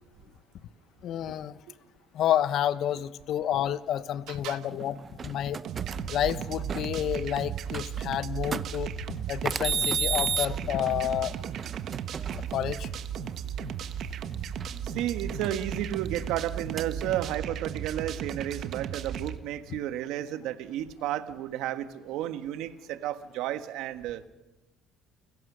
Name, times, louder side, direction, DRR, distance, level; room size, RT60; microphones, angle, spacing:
voice 1, 1.0-1.6 2.1-5.0 5.2-5.6 6.1-11.3 12.5-12.9, left 11 dB, 60° left, 14 dB, 1.0 m, -29 dB
voice 2, 4.3-4.6 12.3-12.4 14.8-24.2, right 12 dB, 75° right, 9 dB, 1.5 m, -32 dB
sound 1, 4.7-6.9 7.6-8.0 8.5-8.8 9.5-12.8 14.6-16.3 16.8-17.3, right 6 dB, 35° right, 0.7 m, -33 dB
sound 2, 5.6-19.4, right 8 dB, 60° right, 1.3 m, -35 dB
29.0 x 16.5 x 6.3 m, 1.1 s
supercardioid pair, 95°, 0 cm